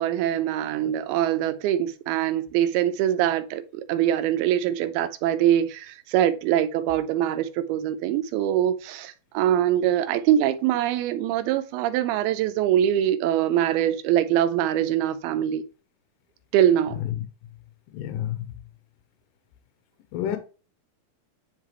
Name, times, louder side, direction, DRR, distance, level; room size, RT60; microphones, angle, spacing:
voice 1, 0.0-15.6 16.5-17.0, right 11 dB, 90° right, 2.6 m, -23 dB
voice 2, 17.9-18.4 20.1-20.4, left 11 dB, 75° left, 2.1 m, -29 dB
9.9 x 3.8 x 3.0 m
omnidirectional pair, 4.3 m